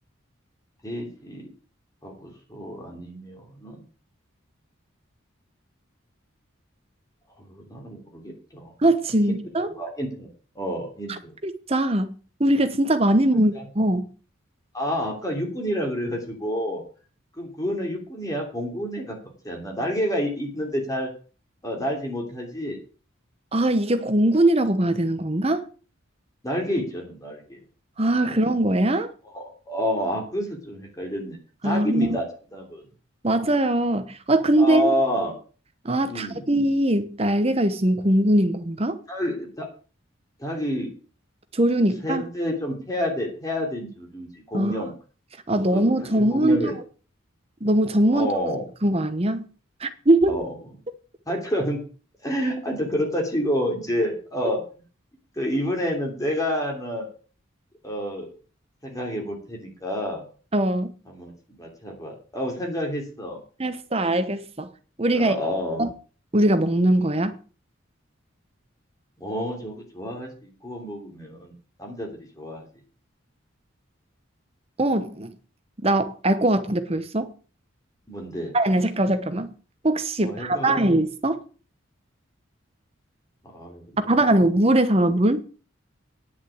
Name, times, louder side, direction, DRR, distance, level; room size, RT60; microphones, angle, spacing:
voice 1, 0.8-1.5 2.0-3.9 7.4-8.7 9.3-9.4 9.7-10.3 10.5-11.3 13.5-13.6 14.7-16.8 17.4-21.1 21.6-22.8 26.4-27.6 28.2-28.4 29.3-31.4 31.6-32.3 32.5-32.8 34.6-35.3 36.0-36.4 39.1-39.7 40.4-40.9 42.0-44.9 45.7-46.8 48.1-48.6 50.3-50.5 51.3-51.8 52.2-54.6 55.4-57.1 57.8-58.3 58.8-60.2 61.1-61.3 61.6-63.4 65.1-65.8 69.2-71.5 71.8-72.1 72.4-72.7 78.1-78.5 80.2-80.8 83.4-84.3, equal, 15° left, 3.0 m, -29 dB
voice 2, 8.8-9.7 11.4-14.0 23.5-25.7 28.0-29.1 31.6-32.2 33.2-34.9 35.8-39.0 41.5-42.2 44.5-44.7 45.5-46.7 47.6-48.3 48.8-49.5 49.8-50.4 60.5-60.9 63.6-64.7 65.0-65.4 65.8-65.9 66.3-67.4 74.8-75.3 75.8-77.3 78.5-79.5 79.8-81.4 84.1-85.5, right 1 dB, 30° right, 1.0 m, -21 dB
10.0 x 6.2 x 8.4 m
head